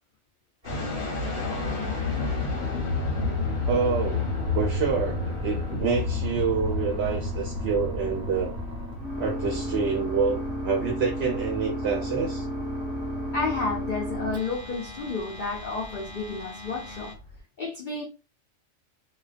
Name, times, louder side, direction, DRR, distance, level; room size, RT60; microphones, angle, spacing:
sound 1, 0.6-17.4, left 3 dB, 80° left, 1.1 m, -32 dB
sound 2, 0.6-17.1, equal, 20° right, 0.9 m, -36 dB
voice 1, 3.7-4.3 4.5-8.6 9.2-12.5, right 5 dB, 60° right, 0.7 m, -27 dB
voice 2, 13.3-17.2 17.6-18.0, left 4 dB, 65° left, 0.5 m, -31 dB
2.4 x 2.2 x 2.4 m
omnidirectional pair, 1.4 m